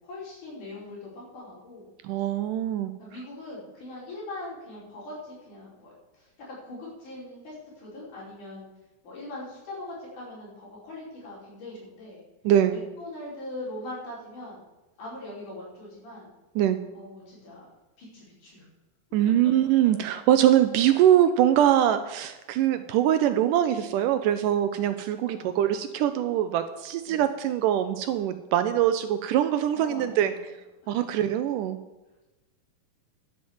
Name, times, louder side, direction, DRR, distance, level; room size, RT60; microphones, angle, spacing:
voice 1, 0.0-1.9 3.0-8.7 9.0-12.2 12.7-14.6 15.0-16.3 16.9-17.7 18.0-18.6 25.3-25.8 27.1-27.2 29.7-30.5 30.8-31.2, left 2 dB, 60° left, -6 dB, 6.5 m, -41 dB
voice 2, 2.0-2.9 12.4-12.8 16.6-16.8 19.1-30.3 30.9-31.8, right 11 dB, 80° right, 10 dB, 2.0 m, -23 dB
11.0 x 8.6 x 7.3 m, 1.1 s
omnidirectional pair, 4.1 m